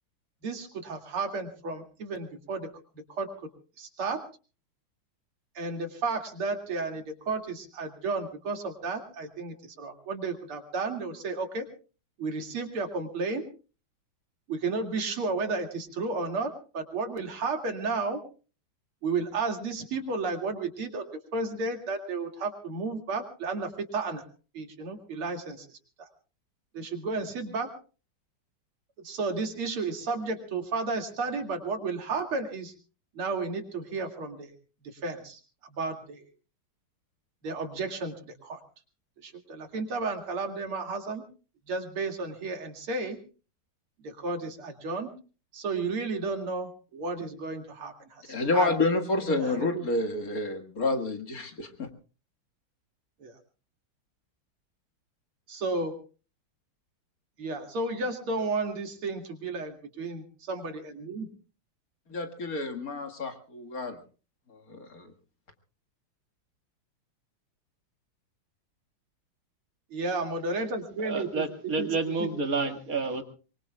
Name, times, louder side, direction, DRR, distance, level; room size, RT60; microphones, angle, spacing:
voice 1, 0.4-3.5 3.8-4.2 5.5-11.7 12.2-13.4 14.5-18.2 19.0-21.0 21.3-24.2 24.5-25.7 26.0-26.1 26.7-27.7 29.0-32.7 33.1-34.5 34.8-35.4 35.7-36.2 37.4-38.6 39.2-41.2 41.7-43.2 44.0-45.1 45.5-48.8 49.2-49.9 53.2-53.3 55.5-55.9 57.4-61.3 69.9-71.5 71.8-71.9 72.2-72.3, right 3 dB, 85° right, 5 dB, 3.3 m, -33 dB
voice 2, 48.3-51.9 62.1-64.0 64.7-65.0, left 2 dB, 45° left, 5 dB, 2.2 m, -29 dB
voice 3, 71.0-73.2, right 4 dB, 40° right, 6 dB, 2.3 m, -29 dB
24.0 x 23.5 x 2.3 m, 0.36 s
omnidirectional pair, 2.3 m